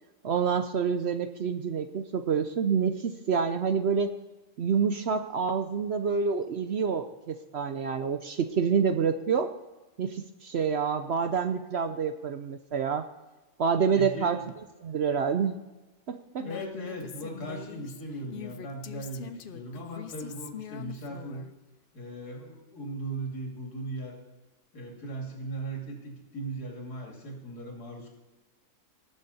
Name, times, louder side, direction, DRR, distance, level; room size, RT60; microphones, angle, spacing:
voice 1, 0.2-4.1 4.6-9.5 10.0-13.0 13.6-14.4 14.8-15.5 16.1-16.5, right 6 dB, 60° right, 8 dB, 0.7 m, -27 dB
voice 2, 13.9-14.4 16.4-21.4 21.9-24.2 24.7-28.1, right 2 dB, 90° left, 0 dB, 3.2 m, -38 dB
Female speech woman speaking, 16.4-21.5, left 7 dB, 60° left, 0.5 m, -43 dB
18.0 x 7.3 x 4.1 m, 1.1 s
omnidirectional pair, 1.6 m